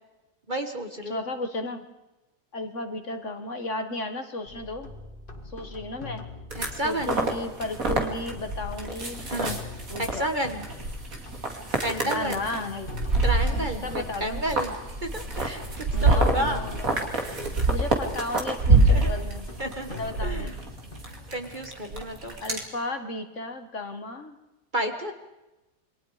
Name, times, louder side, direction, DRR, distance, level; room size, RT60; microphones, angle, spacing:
voice 1, 0.5-1.2 6.6-7.2 9.3-9.6 10.0-10.6 11.8-12.4 13.2-16.7 18.9-19.2 19.6-20.6 21.3-22.3 24.7-25.1, right 1 dB, 30° right, 6 dB, 1.5 m, -31 dB
voice 2, 1.1-1.8 2.5-4.9 5.4-6.3 6.8-9.3 9.9-10.3 12.0-12.9 13.8-14.4 15.9-17.0 17.7-19.4 20.0-20.5 22.4-24.4, left 2 dB, 50° left, 7 dB, 1.8 m, -34 dB
sound 1, 4.5-21.7, left 3 dB, 30° left, 2.2 m, -43 dB
sound 2, 6.5-22.6, right 2 dB, 55° right, 3.0 m, -26 dB
28.0 x 23.0 x 5.0 m, 1.0 s
omnidirectional pair, 1.8 m